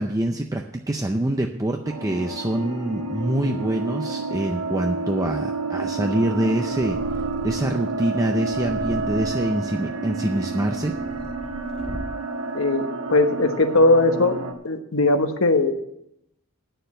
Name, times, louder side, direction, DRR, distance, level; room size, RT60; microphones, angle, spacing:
voice 1, 0.0-7.0 7.4-10.9, right 1 dB, 15° right, 3 dB, 0.5 m, -25 dB
sound 1, 1.8-14.5, right 3 dB, 80° right, 1.3 m, -29 dB
Purr, 6.7-7.8 8.5-9.6 10.3-12.4, equal, 5° left, 1.5 m, -37 dB
voice 2, 12.5-14.4 14.6-15.7, left 2 dB, 70° left, 7 dB, 1.1 m, -19 dB
9.6 x 6.8 x 7.7 m, 0.80 s
head